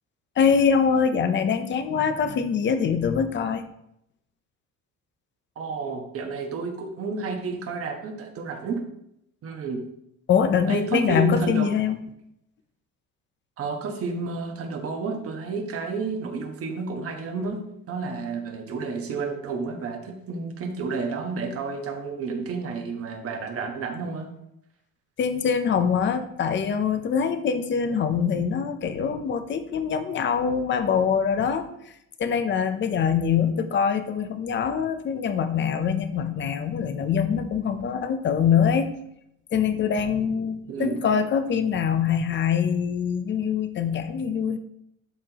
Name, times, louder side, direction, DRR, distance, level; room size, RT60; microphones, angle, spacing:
voice 1, 0.4-3.6 10.3-12.0 25.2-31.7 32.2-38.9 39.5-44.6, left 7 dB, 35° left, 9 dB, 0.7 m, -24 dB
voice 2, 5.6-8.8 9.4-9.8 10.7-11.7 13.6-24.3 40.7-41.2, right 4 dB, 45° right, 4 dB, 1.2 m, -31 dB
12.0 x 4.3 x 3.0 m, 0.77 s
cardioid pair, 150°, 31 cm